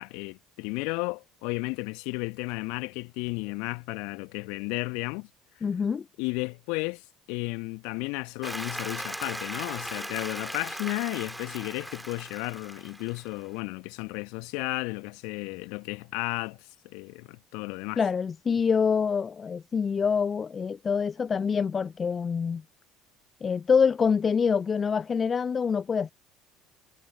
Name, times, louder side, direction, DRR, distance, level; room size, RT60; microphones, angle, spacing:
voice 1, 0.0-5.3 6.2-7.0 7.3-16.6 16.9-18.0, left 29 dB, 65° left, 1.7 m, -33 dB
voice 2, 5.6-6.0 18.0-22.6 23.4-26.1, left 6 dB, 30° left, 0.4 m, -26 dB
Applause, 8.4-13.5, equal, 5° right, 3.2 m, -38 dB
figure-of-eight pair, 60°, 0 cm